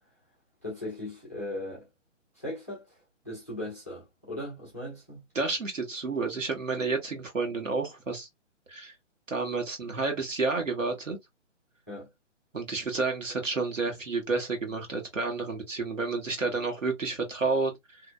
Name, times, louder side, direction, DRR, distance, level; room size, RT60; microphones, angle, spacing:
voice 1, 0.6-1.9 2.4-3.0 3.2-5.2 11.9-12.1, left 1 dB, 15° left, 0.4 m, -38 dB
voice 2, 5.3-8.3 8.7-8.9 9.3-11.2 12.5-18.0, right 3 dB, 85° right, 1.2 m, -30 dB
2.5 x 2.1 x 2.3 m
figure-of-eight pair, 135°, 37 cm